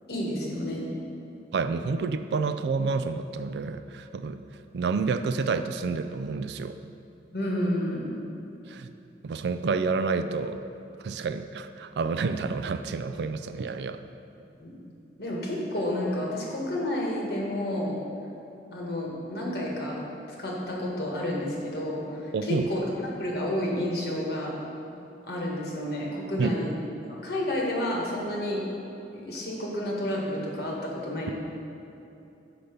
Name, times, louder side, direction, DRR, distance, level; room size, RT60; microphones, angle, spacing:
voice 1, 0.1-0.8 7.3-8.1 14.6-14.7 15.2-18.0 18.7-20.0 20.3-22.9 23.2-24.5 25.3-26.7 27.0-28.6 29.1-31.3, left 1 dB, 60° left, -3 dB, 1.6 m, -30 dB
voice 2, 1.5-4.4 4.7-6.8 8.7-8.9 9.2-10.6 11.0-14.0 22.3-22.7 26.4-26.5, right 4 dB, 70° right, 10 dB, 0.3 m, -29 dB
6.7 x 5.8 x 5.1 m, 2.8 s
head